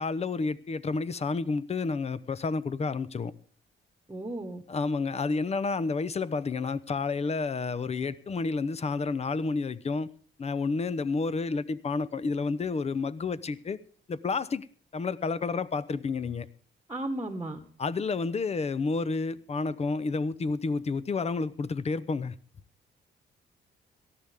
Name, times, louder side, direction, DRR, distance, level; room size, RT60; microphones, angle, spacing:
voice 1, 0.0-3.3 4.7-10.1 10.4-13.8 14.1-14.7 14.9-16.5 17.8-22.3, left 4 dB, 30° left, 0.8 m, -30 dB
voice 2, 4.1-4.6 16.9-17.6, right 1 dB, 15° right, 1.5 m, -34 dB
18.0 x 13.5 x 3.6 m
cardioid pair, 90°, 20 cm